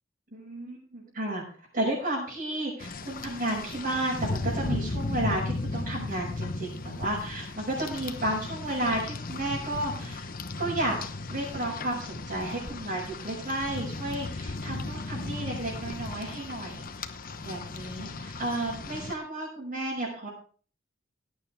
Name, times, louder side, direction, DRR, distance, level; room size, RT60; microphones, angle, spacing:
voice 1, 0.3-1.4 1.7-10.3 10.6-10.9 11.3-16.9 17.4-20.3, right 1 dB, 50° right, -6 dB, 6.0 m, -32 dB
Rain, 2.8-19.1, left 3 dB, 45° left, 1.0 m, -36 dB
17.5 x 9.7 x 3.4 m, 0.42 s
head